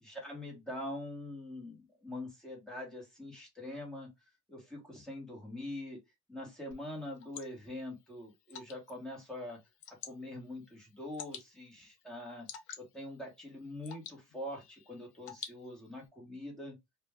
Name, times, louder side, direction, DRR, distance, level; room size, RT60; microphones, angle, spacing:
voice 1, 0.0-4.1 4.5-6.0 6.3-9.6 9.9-12.5 12.8-16.7, left 1 dB, 5° left, 1.2 m, -44 dB
Water / Drip, 6.7-16.1, left 8 dB, 70° left, 0.6 m, -52 dB
2.5 x 2.1 x 3.3 m
cardioid pair, 165°, 12 cm